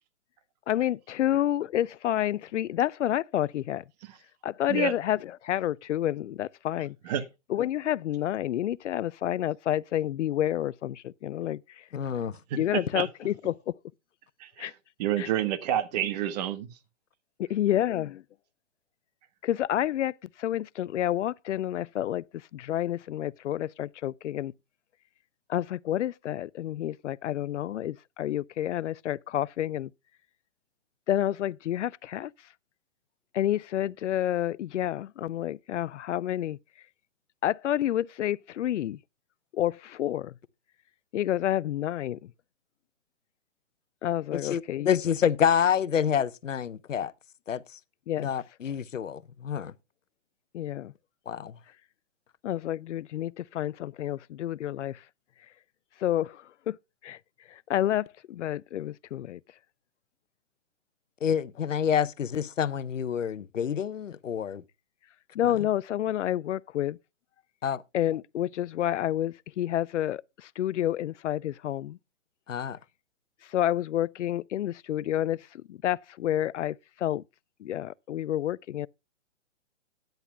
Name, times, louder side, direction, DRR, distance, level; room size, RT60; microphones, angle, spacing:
voice 1, 0.7-3.8 4.4-7.0 7.5-11.9 12.6-13.7 14.6-14.7 15.2-15.3 17.4-18.2 19.4-24.5 25.5-29.9 31.1-32.3 33.3-36.6 37.4-39.0 39.5-40.3 41.1-42.3 44.0-45.0 48.1-48.3 50.5-50.9 52.4-55.0 56.0-56.8 57.0-57.2 57.5-59.4 65.3-67.0 67.9-72.0 73.4-77.2 77.6-78.9, left 12 dB, 70° left, 0.5 m, -29 dB
voice 2, 11.9-12.3 44.3-47.1 47.5-47.6 48.2-49.7 51.3-51.6 61.2-64.6 67.6-67.8 72.5-72.8, left 8 dB, 90° left, 0.8 m, -28 dB
voice 3, 12.5-13.1 14.4-14.7 15.0-16.7, right 11 dB, 35° right, 1.3 m, -29 dB
13.5 x 10.5 x 2.2 m
hypercardioid pair, 145°, 37 cm